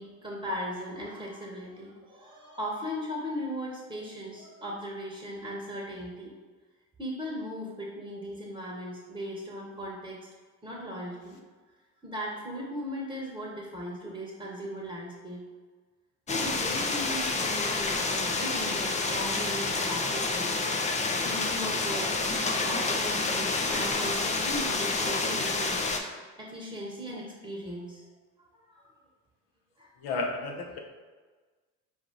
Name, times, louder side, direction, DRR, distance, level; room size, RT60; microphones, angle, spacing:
voice 1, 0.0-6.3 7.0-10.3 10.6-11.4 12.0-15.4 16.3-20.6 21.2-22.2 22.5-28.0 28.7-28.9 29.8-29.9, equal, 10° right, -4 dB, 1.1 m, -38 dB
sound 1, 16.3-26.0, left 3 dB, 15° left, 0.5 m, -29 dB
voice 2, 30.0-30.8, left 3 dB, 60° left, 2 dB, 0.9 m, -32 dB
4.6 x 2.7 x 3.8 m, 1.4 s
hypercardioid pair, 65°, 44 cm